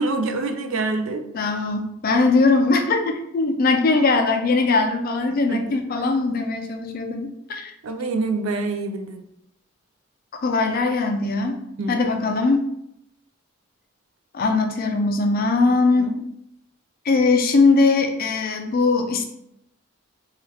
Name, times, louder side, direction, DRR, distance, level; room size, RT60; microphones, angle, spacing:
voice 1, 0.0-1.2 5.5-5.8 7.8-9.2 11.8-12.1 16.0-16.1, right 3 dB, 70° right, 6 dB, 0.4 m, -26 dB
voice 2, 1.3-7.7 10.4-11.6 11.9-12.7 14.3-16.1 17.1-19.3, left 3 dB, 45° left, 5 dB, 0.4 m, -20 dB
2.9 x 2.3 x 3.1 m, 0.78 s
head